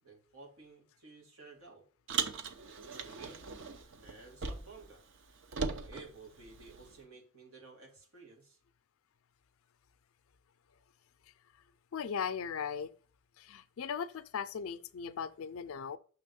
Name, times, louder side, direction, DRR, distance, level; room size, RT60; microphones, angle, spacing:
voice 1, 0.0-1.8 2.9-3.6 4.0-5.0 5.8-8.6, right 3 dB, 85° right, 2.1 m, -54 dB
Car, 2.1-4.9 5.1-7.0, right 5 dB, 65° right, 0.7 m, -39 dB
voice 2, 11.9-12.9 13.4-16.0, left 7 dB, 75° left, 0.4 m, -38 dB
6.3 x 3.4 x 5.3 m
head